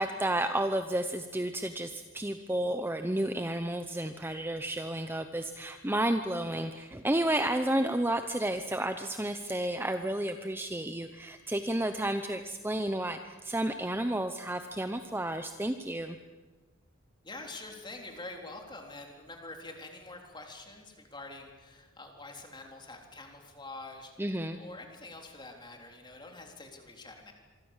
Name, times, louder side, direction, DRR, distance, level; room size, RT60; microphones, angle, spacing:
voice 1, 0.0-16.2 24.2-24.6, right 1 dB, 10° right, 8 dB, 0.8 m, -31 dB
voice 2, 17.2-27.3, left 2 dB, 20° left, 3 dB, 3.6 m, -46 dB
26.0 x 24.5 x 7.4 m, 1.3 s
head